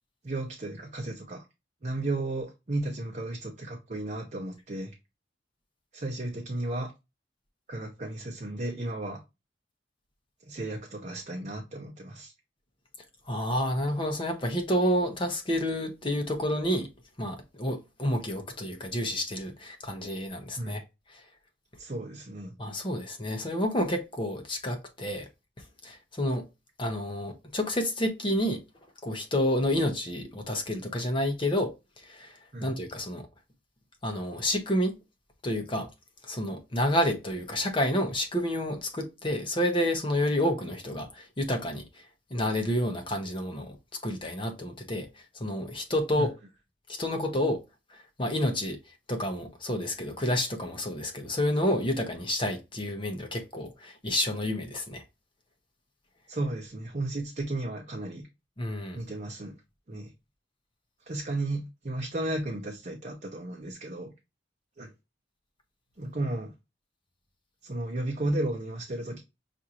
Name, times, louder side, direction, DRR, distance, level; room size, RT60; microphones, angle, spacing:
voice 1, 0.2-1.4 1.8-5.0 5.9-6.9 7.7-9.2 10.5-12.3 20.6-20.8 21.8-22.5 32.5-32.7 46.2-46.3 56.3-58.2 58.9-59.5 59.9-60.1 61.1-64.1 64.8-64.9 66.0-66.5 67.6-69.2, right 2 dB, 40° right, 0.7 m, -34 dB
voice 2, 13.3-16.9 17.2-20.8 21.1-21.2 22.6-25.3 25.8-26.4 26.8-28.6 29.0-33.3 34.0-35.0 35.4-35.9 36.2-42.0 42.3-43.8 44.0-45.1 45.3-46.3 46.9-47.6 47.9-48.8 49.1-55.0 58.6-59.0, left 1 dB, 25° left, 0.8 m, -29 dB
6.0 x 2.5 x 2.9 m
head